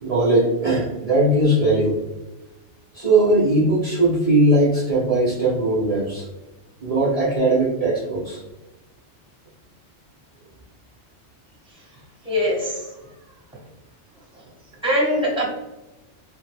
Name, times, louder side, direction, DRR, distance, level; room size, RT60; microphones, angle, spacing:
voice 1, 0.0-2.0 2.9-6.3 6.8-8.4, right 1 dB, 45° right, -5 dB, 0.5 m, -19 dB
voice 2, 12.2-12.9 14.8-15.5, equal, 5° right, -5 dB, 0.8 m, -21 dB
3.2 x 2.0 x 3.2 m, 1.0 s
omnidirectional pair, 1.2 m